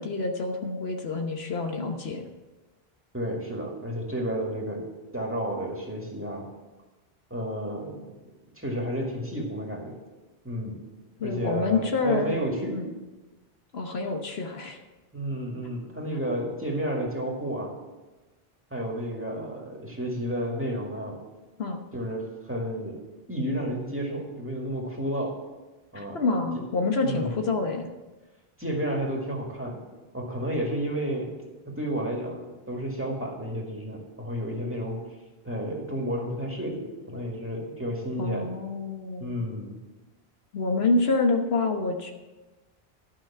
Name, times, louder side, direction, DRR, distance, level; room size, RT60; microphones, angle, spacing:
voice 1, 0.0-2.2 11.2-12.3 12.7-12.9 13.7-14.8 21.6-21.8 25.9-27.9 38.2-39.4 40.5-42.1, left 3 dB, 75° left, 4 dB, 1.3 m, -27 dB
voice 2, 3.1-4.9 5.1-6.4 7.3-8.0 8.5-10.0 10.4-10.8 11.2-12.8 15.1-17.8 18.7-21.2 21.9-23.0 23.3-25.3 25.9-26.2 27.0-27.3 28.6-29.8 30.1-31.3 31.8-35.0 35.4-38.5 39.2-39.8, equal, 10° right, -1 dB, 2.1 m, -31 dB
12.0 x 5.8 x 7.3 m, 1.2 s
omnidirectional pair, 1.0 m